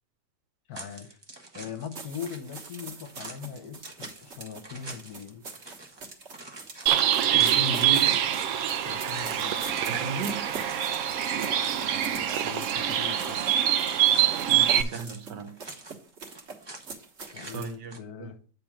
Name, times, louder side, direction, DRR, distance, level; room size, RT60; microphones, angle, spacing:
voice 1, 0.7-1.2 1.5-5.4 8.8-9.9 12.4-13.5 17.3-18.4, left 7 dB, 65° left, 9 dB, 1.3 m, -41 dB
sound 1, 0.7-2.0 2.2-12.8 13.0-15.2 15.5-16.9 17.2-18.0, right 2 dB, 25° right, 0.6 m, -46 dB
sound 2, 1.9-17.7, right 4 dB, 45° right, 1.5 m, -43 dB
Bird, 6.9-14.8, right 10 dB, 70° right, 0.7 m, -25 dB
voice 2, 7.3-8.2 9.9-10.5 14.5-15.5 17.5-18.3, right 4 dB, 90° right, 9 dB, 1.5 m, -34 dB
8.7 x 3.5 x 6.1 m, 0.41 s
omnidirectional pair, 1.8 m